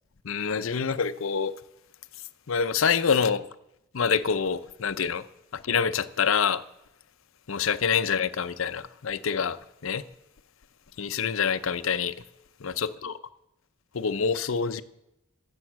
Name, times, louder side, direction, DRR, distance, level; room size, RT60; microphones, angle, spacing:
voice 1, 0.2-1.5 2.5-3.5 3.9-5.3 5.5-6.6 7.5-9.6 9.8-10.0 11.0-12.1 12.6-13.2 13.9-14.8, left 6 dB, 70° left, 13 dB, 0.6 m, -26 dB
12.5 x 7.1 x 7.3 m, 0.85 s
head